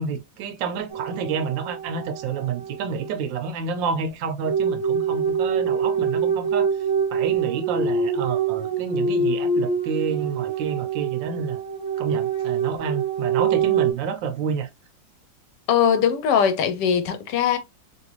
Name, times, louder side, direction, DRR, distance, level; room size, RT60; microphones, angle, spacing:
voice 1, 0.0-6.7 7.1-11.6 12.0-14.7, right 6 dB, 85° right, 1.4 m, -29 dB
sound 1, 0.9-3.3 4.4-13.9, right 6 dB, 15° left, 0.9 m, -25 dB
voice 2, 15.7-17.6, left 8 dB, 75° left, 1.2 m, -20 dB
3.2 x 3.0 x 3.0 m
omnidirectional pair, 2.0 m